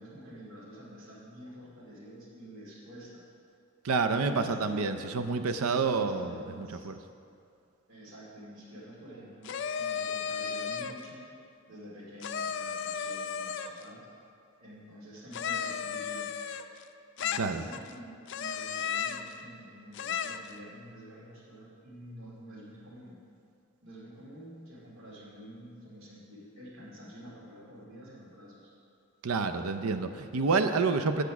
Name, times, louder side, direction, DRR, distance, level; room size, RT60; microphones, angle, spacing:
voice 1, 0.0-3.3 4.2-6.9 7.9-11.2 11.7-14.1 14.6-16.3 17.2-23.2 23.8-28.7, equal, 70° right, -4 dB, 2.3 m, -48 dB
voice 2, 3.8-7.0 17.4-17.6 29.2-31.2, right 4 dB, 85° right, 8 dB, 0.5 m, -28 dB
sound 1, 9.4-11.0 12.2-13.8 15.3-16.8 17.2-17.9 18.3-19.3 19.9-20.5, left 7 dB, 55° left, 0.4 m, -34 dB
8.4 x 8.1 x 5.9 m, 2.4 s
head